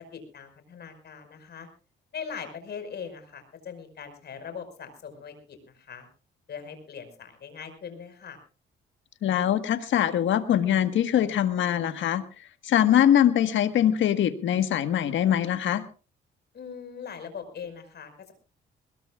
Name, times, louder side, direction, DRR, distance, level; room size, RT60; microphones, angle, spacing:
voice 1, 0.0-1.7 2.1-6.1 6.5-8.4 16.5-18.3, left 6 dB, 55° left, 7 dB, 5.3 m, -41 dB
voice 2, 9.2-12.2 12.6-15.8, left 10 dB, 75° left, 10 dB, 1.6 m, -23 dB
21.5 x 21.0 x 2.4 m, 0.35 s
cardioid pair, 90°, 20 cm